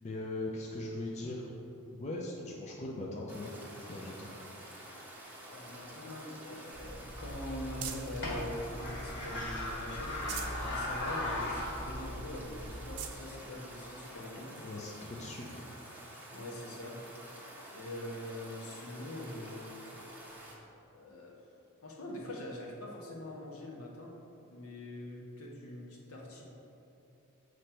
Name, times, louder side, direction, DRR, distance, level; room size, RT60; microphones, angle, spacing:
voice 1, 0.0-1.5 1.9-3.5 3.9-4.3 14.6-15.7, left 2 dB, 30° left, -3 dB, 0.6 m, -40 dB
Stream, 3.3-20.6, right 1 dB, 10° right, 0.9 m, -49 dB
voice 2, 5.5-14.5 16.3-17.0 17.7-19.8 20.9-21.3 21.8-24.1 24.5-26.4, left 1 dB, 70° left, -3 dB, 1.3 m, -43 dB
sound 1, 6.7-13.0, left 1 dB, 50° left, 1.5 m, -38 dB
sound 2, 7.8-8.3 8.8-9.6 10.0-10.7 11.1-11.2 11.6-11.7 12.3-12.4 12.7-13.2 14.0-14.1 15.9-16.0, right 8 dB, 85° right, 0.6 m, -46 dB
8.0 x 3.2 x 6.0 m, 2.9 s
head